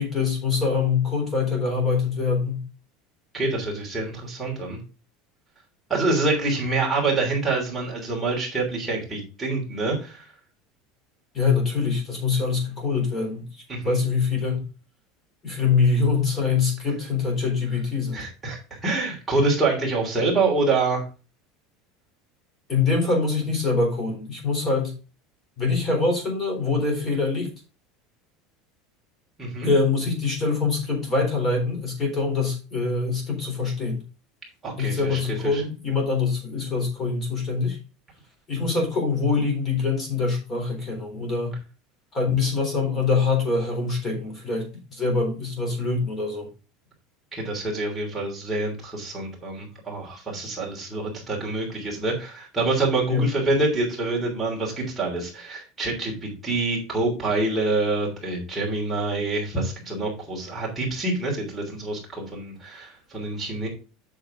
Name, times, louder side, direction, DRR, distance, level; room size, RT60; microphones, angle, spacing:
voice 1, 0.0-2.6 11.3-13.4 13.9-14.6 15.4-18.2 22.7-24.9 25.6-27.5 29.6-34.0 34.8-37.8 38.5-41.6 42.1-46.5 53.1-53.2, left 4 dB, 20° left, 2 dB, 3.7 m, -24 dB
voice 2, 3.3-4.8 5.9-10.3 13.7-14.0 18.1-21.0 29.4-29.7 34.6-35.6 47.3-63.7, right 3 dB, 10° right, -4 dB, 3.0 m, -26 dB
8.0 x 6.5 x 3.8 m, 0.33 s
cardioid pair, 170°, 0 cm